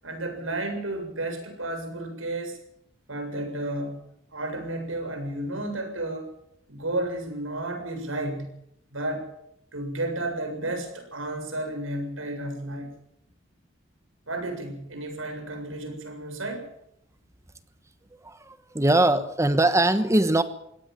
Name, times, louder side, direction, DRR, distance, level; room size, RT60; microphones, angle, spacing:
voice 1, 0.0-2.6 3.1-4.0 4.3-6.3 6.7-8.5 8.9-9.3 9.7-12.9 14.3-16.7, right 1 dB, 90° right, 6 dB, 7.6 m, -32 dB
voice 2, 18.2-20.4, right 1 dB, 15° right, 11 dB, 1.2 m, -21 dB
24.0 x 17.5 x 7.8 m, 0.76 s
head